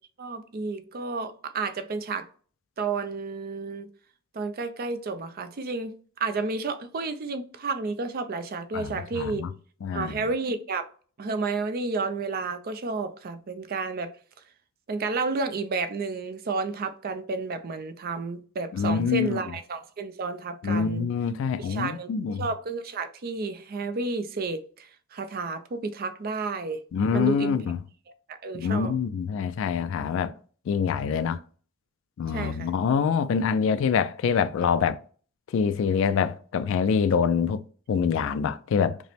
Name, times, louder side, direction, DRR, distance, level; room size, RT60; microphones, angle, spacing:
voice 1, 0.2-2.3 2.8-3.9 4.3-5.9 6.2-9.4 9.9-10.9 11.2-14.1 14.9-21.1 21.6-26.8 27.1-27.6 28.3-28.9 32.3-32.7, right 4 dB, 45° right, 0.5 m, -31 dB
voice 2, 8.7-9.5 9.8-10.2 18.7-19.4 20.6-22.5 26.9-27.8 28.5-30.3 30.7-31.4 32.2-35.0 35.5-37.6 37.9-39.0, left 6 dB, 65° left, 0.3 m, -25 dB
5.0 x 2.0 x 3.3 m
head